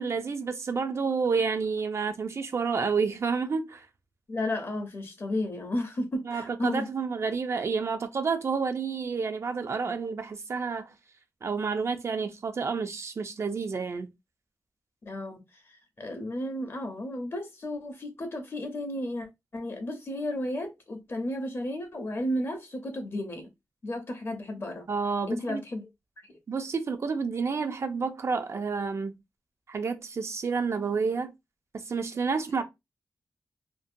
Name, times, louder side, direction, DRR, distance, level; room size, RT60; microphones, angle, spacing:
voice 1, 0.0-3.9 6.3-10.9 11.4-14.1 24.9-25.6 26.5-29.1 29.7-31.3 31.9-32.6, right 5 dB, 45° right, 0.3 m, -29 dB
voice 2, 4.3-6.9 15.1-15.4 16.0-19.3 19.5-23.5 23.8-24.8 25.3-25.9, left 1 dB, 40° left, 0.6 m, -33 dB
2.6 x 2.1 x 2.5 m
wide cardioid pair, 130°, 7 cm